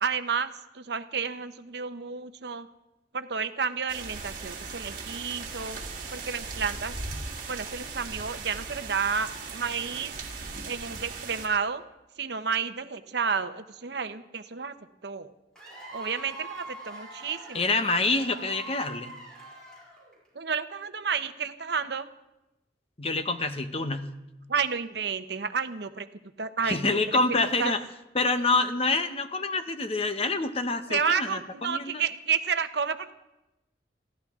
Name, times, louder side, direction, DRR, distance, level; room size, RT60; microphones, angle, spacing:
voice 1, 0.0-2.7 3.1-5.8 6.1-6.9 7.5-10.1 10.6-11.8 12.2-14.7 15.0-15.3 15.9-17.7 20.3-22.1 24.5-26.1 26.4-27.0 27.6-27.8 30.9-33.1, right 6 dB, 65° right, 10 dB, 0.8 m, -31 dB
sound 1, 3.9-11.5, right 4 dB, 50° right, 2.5 m, -38 dB
Cheering / Applause / Crowd, 15.6-20.3, right 2 dB, 5° left, 6.4 m, -43 dB
voice 2, 17.5-19.1 23.0-24.1 26.6-27.8 28.1-32.0, left 3 dB, 30° left, 9 dB, 0.8 m, -27 dB
21.5 x 15.5 x 3.6 m, 0.96 s
head